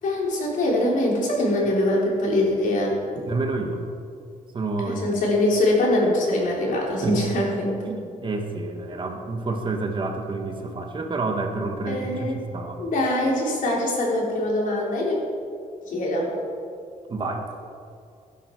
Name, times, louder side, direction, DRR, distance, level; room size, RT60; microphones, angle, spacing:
voice 1, 0.0-3.0 4.8-7.9 11.9-12.4 12.8-15.2 15.9-16.3, left 1 dB, 70° left, -3 dB, 3.8 m, -23 dB
voice 2, 3.2-3.8 4.5-5.0 7.0-7.2 7.8-12.8 17.1-17.4, right 3 dB, 35° right, 3 dB, 1.5 m, -28 dB
17.0 x 10.5 x 4.7 m, 2.4 s
wide cardioid pair, 150°, 14 cm